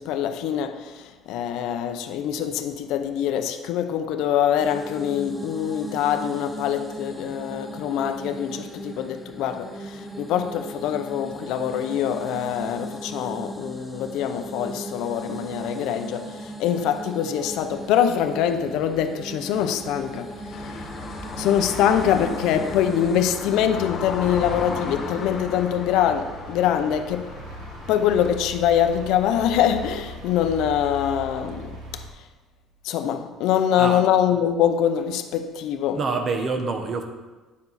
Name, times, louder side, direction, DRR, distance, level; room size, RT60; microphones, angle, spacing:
voice 1, 0.0-21.1 21.4-27.3 27.9-32.0 32.8-36.0, left 9 dB, 70° left, 0.6 m, -24 dB
sound 1, 4.6-23.5, right 1 dB, 5° right, 0.6 m, -38 dB
sound 2, 17.3-32.1, right 2 dB, 80° right, 1.6 m, -42 dB
sound 3, 20.5-28.4, left 4 dB, 40° left, 1.4 m, -35 dB
voice 2, 35.9-37.0, right 4 dB, 30° right, 0.9 m, -26 dB
9.4 x 6.9 x 4.1 m
cardioid pair, 170°, 0 cm